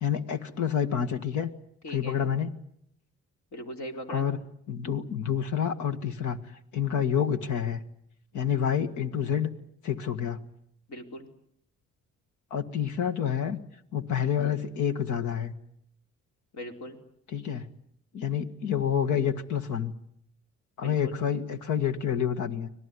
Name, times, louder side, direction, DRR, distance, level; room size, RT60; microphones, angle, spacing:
voice 1, 0.0-1.5 1.9-2.5 4.1-4.4 4.7-6.4 6.7-7.8 8.3-9.5 9.8-10.4 12.5-13.6 13.9-15.5 17.3-17.7 18.1-19.9 20.8-22.7, left 8 dB, 80° left, 7 dB, 1.9 m, -28 dB
voice 2, 1.8-2.2 3.5-4.3 10.9-11.3 16.5-17.0 20.8-21.2, equal, 65° left, 3 dB, 4.1 m, -39 dB
25.5 x 18.0 x 9.8 m, 0.71 s
cardioid pair, 90°, 30 cm